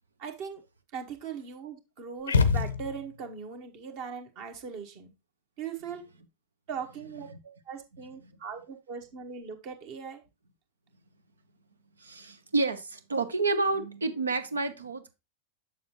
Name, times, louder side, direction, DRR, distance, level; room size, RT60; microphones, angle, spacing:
voice 1, 0.2-0.6 0.9-5.1 5.6-6.0 6.7-10.2, right 6 dB, 45° right, 5 dB, 1.3 m, -40 dB
sound 1, 2.3-3.3, left 5 dB, 70° left, 0.6 m, -25 dB
voice 2, 12.0-15.1, right 3 dB, 75° right, 11 dB, 0.8 m, -29 dB
7.1 x 6.9 x 3.0 m, 0.25 s
figure-of-eight pair, 90°, 0 cm